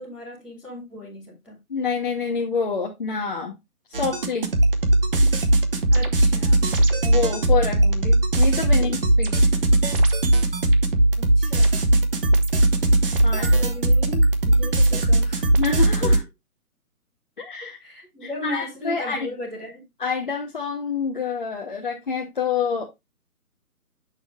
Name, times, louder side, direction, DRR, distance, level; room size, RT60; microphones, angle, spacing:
voice 1, 0.0-1.6 5.9-6.7 8.8-9.0 11.2-11.8 13.2-15.5 16.0-16.2 17.6-19.8, left 1 dB, 5° right, 1.3 m, -36 dB
voice 2, 1.7-3.5 3.9-4.5 7.0-9.5 13.2-13.5 15.6-16.2 17.4-17.8 18.2-19.3 20.0-22.9, left 5 dB, 35° left, 0.7 m, -27 dB
sound 1, 3.9-16.2, right 1 dB, 35° right, 1.1 m, -19 dB
7.8 x 6.5 x 2.3 m
hypercardioid pair, 165°, 45 cm